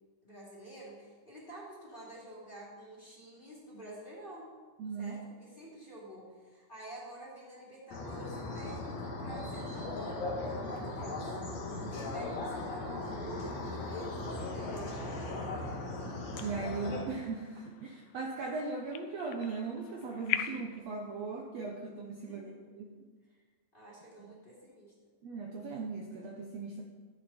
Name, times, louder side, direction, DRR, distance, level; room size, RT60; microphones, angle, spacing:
voice 1, 0.2-4.5 5.0-11.4 11.6-15.3 22.2-22.7 23.3-23.4 23.7-24.9, right 1 dB, 15° left, -6 dB, 3.1 m, -49 dB
voice 2, 4.8-5.1 16.4-22.5 22.8-22.9 24.3-24.4 25.2-26.8, right 4 dB, 80° right, 0 dB, 1.5 m, -38 dB
sound 1, 7.9-17.0, left 2 dB, 55° left, 2.6 m, -38 dB
sound 2, 15.5-20.8, left 12 dB, 85° left, 1.9 m, -42 dB
13.0 x 11.0 x 4.4 m, 1.4 s
omnidirectional pair, 4.5 m